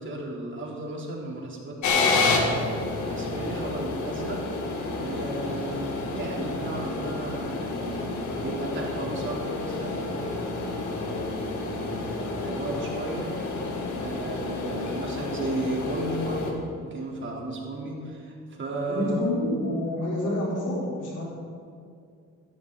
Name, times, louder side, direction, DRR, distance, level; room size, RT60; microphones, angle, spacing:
voice 1, 0.0-4.4 5.0-19.2, right 1 dB, 40° right, -2 dB, 3.4 m, -34 dB
sound 1, 1.8-16.5, left 3 dB, 70° left, 2.0 m, -30 dB
voice 2, 18.9-21.2, left 1 dB, 90° left, -4 dB, 4.1 m, -28 dB
16.0 x 12.0 x 4.0 m, 2.3 s
cardioid pair, 90°, 30 cm